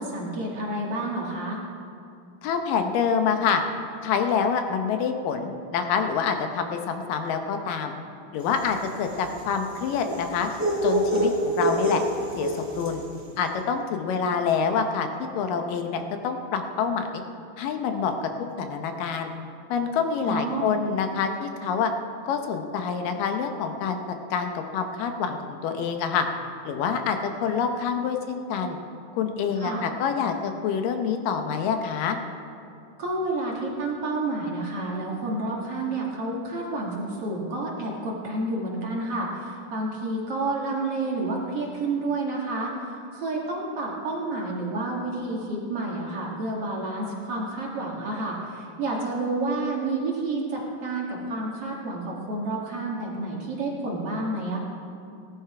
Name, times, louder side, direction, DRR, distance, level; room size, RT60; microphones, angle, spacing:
voice 1, 0.0-1.6 20.2-20.7 29.6-29.8 33.0-54.6, right 2 dB, 50° right, -2 dB, 2.3 m, -30 dB
voice 2, 2.4-3.6 4.0-7.9 8.3-10.5 10.8-12.0 12.4-13.0 13.4-15.1 15.4-17.1 17.6-18.3 18.6-19.3 19.7-21.9 22.2-24.0 24.3-26.3 26.7-28.8 29.1-32.2, left 6 dB, 80° left, 6 dB, 2.5 m, -26 dB
sound 1, 8.5-13.1, right 1 dB, 10° right, 1.2 m, -27 dB
18.0 x 11.5 x 4.8 m, 2.5 s
omnidirectional pair, 4.0 m